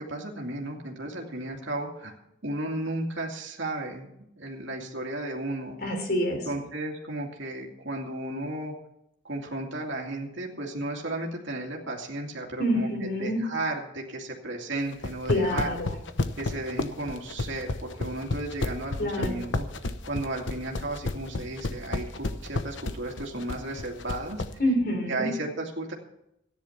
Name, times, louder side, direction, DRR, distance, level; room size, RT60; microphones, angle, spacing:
voice 1, 0.0-2.1 2.4-4.1 4.4-5.8 6.4-8.7 9.2-15.7 16.4-19.7 20.0-24.4 25.1-25.9, right 2 dB, 65° right, 0 dB, 2.5 m, -34 dB
voice 2, 5.8-6.4 12.6-13.4 15.3-15.9 19.0-19.5 24.6-25.3, equal, 50° left, 4 dB, 3.6 m, -27 dB
sound 1, 14.9-24.5, left 2 dB, 65° left, 1.0 m, -31 dB
14.0 x 10.5 x 5.8 m, 0.79 s
head